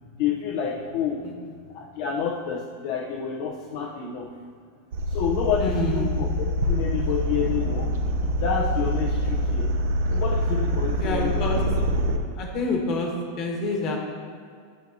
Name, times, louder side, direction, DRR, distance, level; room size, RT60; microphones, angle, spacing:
voice 1, 0.2-1.2 1.7-4.3 5.1-7.9 8.4-9.7 10.1-12.0, left 7 dB, 55° left, -2 dB, 0.8 m, -29 dB
sound 1, 4.9-12.2, equal, 65° right, 0.7 m, -25 dB
voice 2, 5.6-6.2 11.0-11.6 12.3-14.0, left 2 dB, 35° left, 0 dB, 1.4 m, -27 dB
12.0 x 4.5 x 2.8 m, 2.2 s
supercardioid pair, 155°, 0 cm